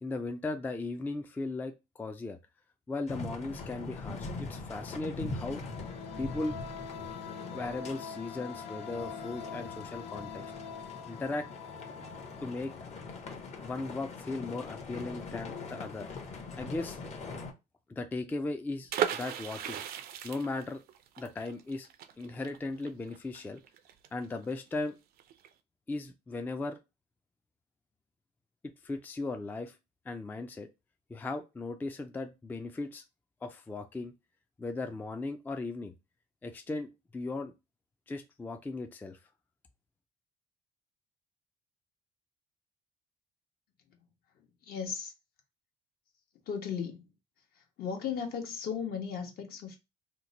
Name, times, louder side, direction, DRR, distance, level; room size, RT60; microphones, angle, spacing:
voice 1, 0.0-2.4 2.9-5.6 6.2-6.6 7.5-10.4 11.1-11.5 12.4-12.7 13.6-16.1 16.6-17.0 17.9-19.8 20.2-20.8 21.2-21.9 22.2-23.6 24.1-25.0 25.9-26.8 28.6-29.8 30.1-30.7 31.1-33.0 33.4-34.1 34.6-35.9 36.4-37.5 38.1-39.2, left 3 dB, 10° left, 0.3 m, -37 dB
sound 1, 3.1-17.5, left 3 dB, 40° left, 0.8 m, -42 dB
sound 2, 5.1-13.7, left 7 dB, 90° left, 0.5 m, -45 dB
sound 3, 18.9-24.5 24.8-24.9 25.2-25.5, right 9 dB, 65° right, 0.4 m, -36 dB
voice 2, 44.4-45.1 46.5-47.1 47.5-49.8, left 7 dB, 65° left, 1.0 m, -36 dB
2.9 x 2.1 x 3.9 m
cardioid pair, 110°, 17 cm